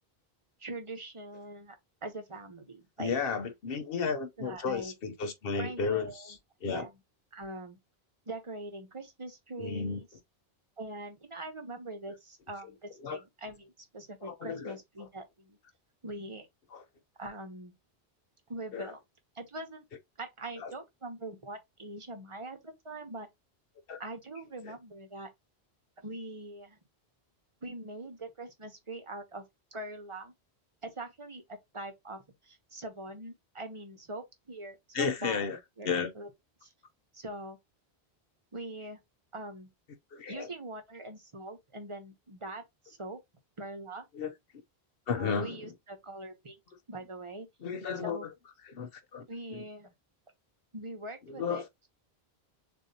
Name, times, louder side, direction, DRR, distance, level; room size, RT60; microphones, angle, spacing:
voice 1, 0.6-3.1 4.4-4.9 5.6-6.4 6.7-6.9 7.3-7.8 8.3-10.1 10.8-15.6 16.0-16.5 17.2-17.7 18.5-19.0 19.3-19.8 20.2-23.3 24.0-25.3 26.0-26.8 27.6-29.4 29.7-30.3 30.8-35.5 35.8-36.3 36.6-36.7 37.1-37.6 38.5-39.0 39.3-39.7 40.3-43.2 43.6-44.1 45.1-46.6 46.9-47.5 48.0-48.3 49.3-49.9 50.7-51.6, right 2 dB, 30° right, 1.0 m, -42 dB
voice 2, 3.0-6.9 9.6-10.0 13.0-13.2 14.2-15.1 16.7-16.8 18.7-18.9 20.6-20.7 23.9-24.0 24.6-24.7 34.9-35.6 35.8-36.1 40.1-40.5 44.1-44.3 45.1-45.7 47.6-48.3 48.7-49.2 49.5-49.6 51.3-51.7, left 5 dB, 65° left, 1.0 m, -33 dB
6.6 x 2.7 x 2.8 m
omnidirectional pair, 1.1 m